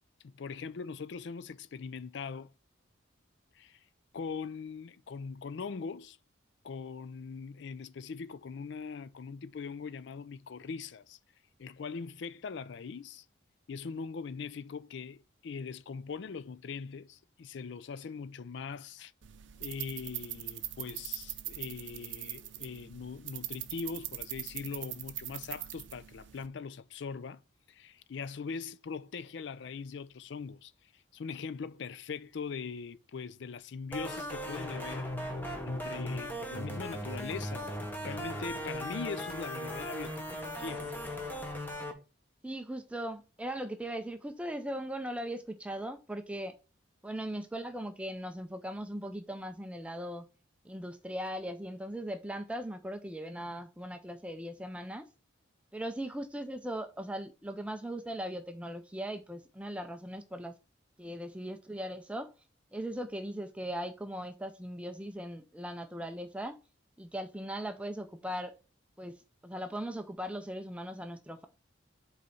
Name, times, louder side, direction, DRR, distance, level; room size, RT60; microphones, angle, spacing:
voice 1, 0.2-2.5 3.6-3.8 4.1-6.2 6.6-11.2 11.6-13.2 13.7-19.1 19.6-27.4 27.7-30.7 31.1-35.1 35.6-37.7 38.0-40.9, left 5 dB, 65° left, 0.4 m, -41 dB
sound 1, 19.2-26.5, right 14 dB, 70° right, 0.5 m, -42 dB
sound 2, 33.9-41.9, equal, 10° left, 1.0 m, -38 dB
voice 2, 42.4-46.6 47.0-50.3 50.6-55.1 55.7-60.5 61.0-62.3 62.7-66.6 67.0-68.5 69.0-71.5, equal, 5° right, 0.4 m, -39 dB
5.3 x 4.0 x 5.6 m
head